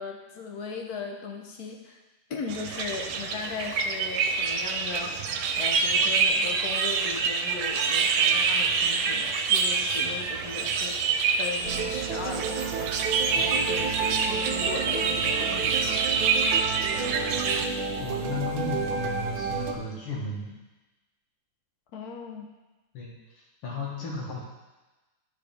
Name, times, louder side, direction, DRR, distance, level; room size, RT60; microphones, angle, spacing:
voice 1, 0.0-2.0 2.3-11.0 11.3-16.0 21.9-22.5, left 5 dB, 60° left, 2 dB, 1.0 m, -38 dB
sound 1, 2.5-17.7, right 5 dB, 90° right, 1.5 m, -26 dB
sound 2, 11.6-19.7, right 5 dB, 65° right, 1.4 m, -31 dB
voice 2, 18.0-20.5 22.9-24.4, left 3 dB, 90° left, -4 dB, 2.5 m, -35 dB
11.5 x 4.9 x 3.4 m, 1.1 s
omnidirectional pair, 2.4 m